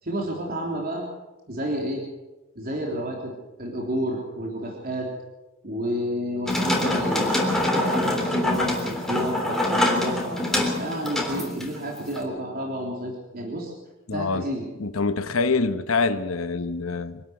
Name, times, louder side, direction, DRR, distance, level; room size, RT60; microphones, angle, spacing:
voice 1, 0.0-1.1 1.5-2.0 2.6-3.3 3.6-5.1 5.6-10.4 10.8-13.7 14.1-14.7, equal, 45° right, 3.5 m, -30 dB
sound 1, 6.5-12.2, left 1 dB, ahead, 3.5 m, -24 dB
voice 2, 14.1-14.5 14.8-17.2, left 4 dB, 85° left, 1.1 m, -25 dB
25.0 x 12.5 x 8.2 m
head